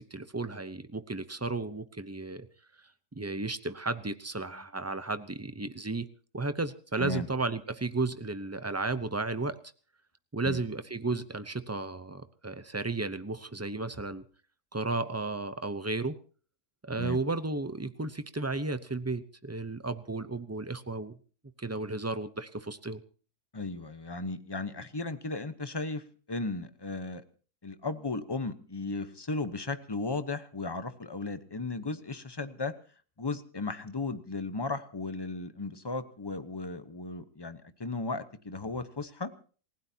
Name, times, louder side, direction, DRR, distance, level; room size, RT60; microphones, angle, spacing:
voice 1, 0.0-2.5 3.1-6.1 6.3-9.6 10.3-14.2 14.7-16.2 16.8-21.2 21.6-23.0, right 3 dB, 25° right, 12 dB, 0.3 m, -33 dB
voice 2, 23.5-27.2 27.6-32.7 33.2-39.3, left 3 dB, 20° left, 10 dB, 0.9 m, -35 dB
28.0 x 16.5 x 2.8 m, 0.40 s
omnidirectional pair, 1.7 m